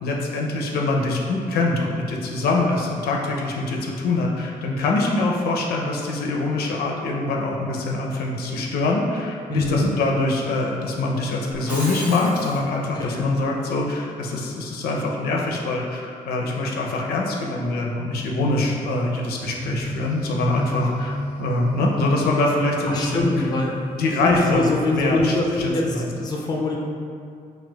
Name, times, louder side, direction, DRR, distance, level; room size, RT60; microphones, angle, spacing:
voice 1, 0.0-23.5 23.9-26.1, left 2 dB, 85° left, -1 dB, 0.5 m, -24 dB
voice 2, 9.5-9.9 12.9-13.2 22.9-23.7 24.2-26.8, left 2 dB, 25° left, -1 dB, 0.3 m, -23 dB
Shatter, 11.5-12.6, right 1 dB, 10° right, 0.8 m, -33 dB
sound 1, 19.4-24.9, left 1 dB, 65° right, 0.8 m, -32 dB
4.2 x 2.2 x 2.2 m, 2.3 s
cardioid pair, 140°, 16 cm